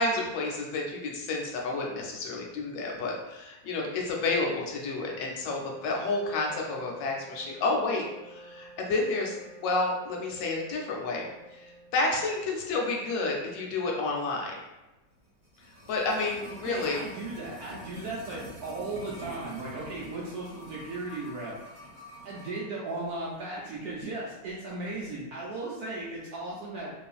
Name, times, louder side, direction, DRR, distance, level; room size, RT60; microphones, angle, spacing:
voice 1, 0.0-9.4 9.6-11.2 11.5-14.6 15.9-17.0, left 3 dB, 75° left, -1 dB, 1.2 m, -30 dB
Wind instrument woodwind instrument, 5.0-12.8, right 2 dB, 35° left, 0.6 m, -50 dB
sound 1, 15.2-22.6 22.9-23.0, equal, 30° right, 1.0 m, -47 dB
voice 2, 16.5-21.9 22.2-26.9, right 2 dB, 75° right, -6 dB, 0.9 m, -36 dB
2.8 x 2.4 x 2.3 m, 1.1 s
omnidirectional pair, 2.0 m